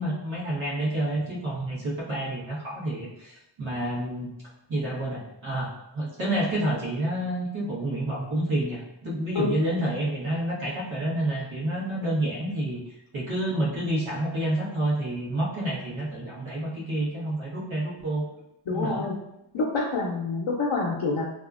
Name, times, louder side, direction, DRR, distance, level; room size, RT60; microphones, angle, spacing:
voice 1, 0.0-4.3 4.7-12.8 13.1-18.2 18.7-19.0, right 1 dB, 75° right, -7 dB, 1.2 m, -29 dB
voice 2, 18.7-19.2 19.5-21.2, left 3 dB, 80° left, -3 dB, 0.6 m, -27 dB
2.7 x 2.4 x 2.4 m, 0.83 s
wide cardioid pair, 65°, 48 cm